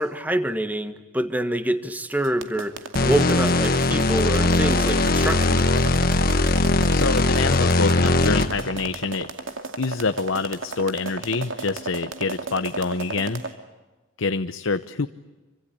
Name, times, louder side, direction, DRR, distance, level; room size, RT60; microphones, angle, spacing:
voice 1, 0.0-2.7 3.0-5.9, right 1 dB, 10° right, 9 dB, 1.4 m, -26 dB
sound 1, 2.2-13.5, right 3 dB, 80° right, 2.5 m, -33 dB
sound 2, 3.0-8.7, left 2 dB, 45° left, 1.5 m, -20 dB
voice 2, 6.9-9.3 9.8-13.4 14.2-15.1, left 4 dB, 85° left, 9 dB, 0.9 m, -26 dB
27.5 x 25.5 x 8.6 m, 1.2 s
head